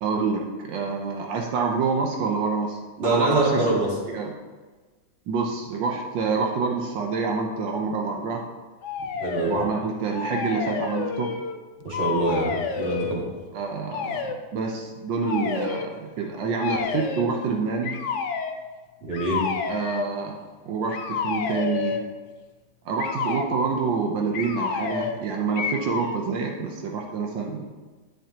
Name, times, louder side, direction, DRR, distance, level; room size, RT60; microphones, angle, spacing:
voice 1, 0.0-3.7 4.1-4.3 5.3-8.4 9.5-11.3 13.5-18.0 19.7-20.4 20.7-22.0 22.8-27.7, right 4 dB, 85° right, 1 dB, 1.6 m, -27 dB
voice 2, 3.0-3.9 9.2-9.6 11.8-13.2 19.1-19.5, right 2 dB, 35° right, -5 dB, 2.5 m, -24 dB
sound 1, 8.8-9.7 10.1-11.6 11.9-13.2 13.9-14.4 15.2-15.9 16.6-17.3 17.8-18.6 19.1-20.1 20.9-22.1 23.0-23.5 24.3-25.2 25.6-26.2, left 5 dB, 80° left, 0.6 m, -29 dB
10.0 x 9.0 x 2.9 m, 1.4 s
omnidirectional pair, 2.0 m